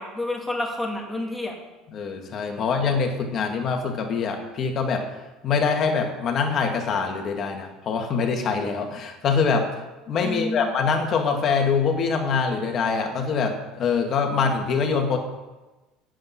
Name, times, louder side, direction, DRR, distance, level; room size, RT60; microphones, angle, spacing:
voice 1, 0.0-1.6 2.5-2.7 10.2-10.7, left 2 dB, ahead, -1 dB, 2.0 m, -29 dB
voice 2, 1.9-5.0 5.4-9.7 10.1-15.2, left 5 dB, 35° left, 3 dB, 1.8 m, -24 dB
8.6 x 7.7 x 8.5 m, 1.1 s
cardioid pair, 150°, 0 cm